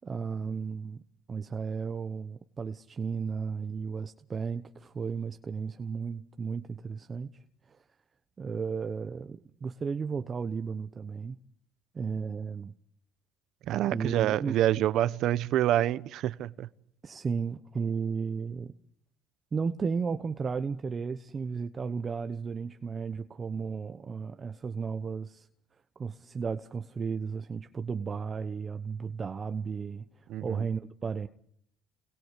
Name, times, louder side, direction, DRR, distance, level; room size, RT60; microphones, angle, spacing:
voice 1, 0.0-1.0 1.3-7.4 7.7-7.8 8.4-11.4 11.9-12.7 13.9-14.6 17.0-18.7 19.5-25.5 26.0-31.3, right 5 dB, 30° right, 1.0 m, -34 dB
voice 2, 13.7-16.7 30.3-30.6, right 13 dB, 65° right, 1.0 m, -27 dB
29.0 x 21.5 x 8.3 m
cardioid pair, 100°, 0 cm